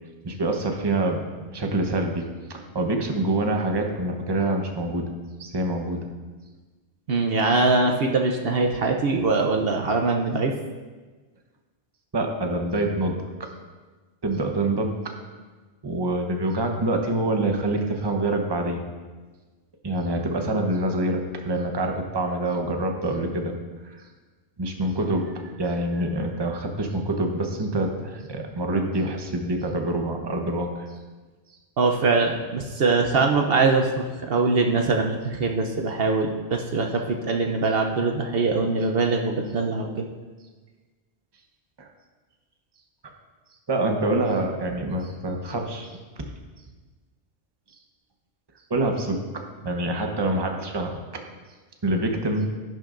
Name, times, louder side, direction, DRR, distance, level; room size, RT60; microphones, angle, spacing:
voice 1, 0.2-5.1 5.4-6.1 12.1-13.5 14.2-15.1 15.8-18.8 19.8-23.5 23.8-24.1 24.6-31.0 41.8-41.9 43.7-45.9 48.7-51.2 51.8-52.5, right 2 dB, 25° right, 3 dB, 0.9 m, -26 dB
voice 2, 7.1-10.5 31.8-40.0, right 3 dB, 65° right, 3 dB, 0.9 m, -22 dB
12.0 x 11.0 x 2.5 m, 1.3 s
omnidirectional pair, 1.1 m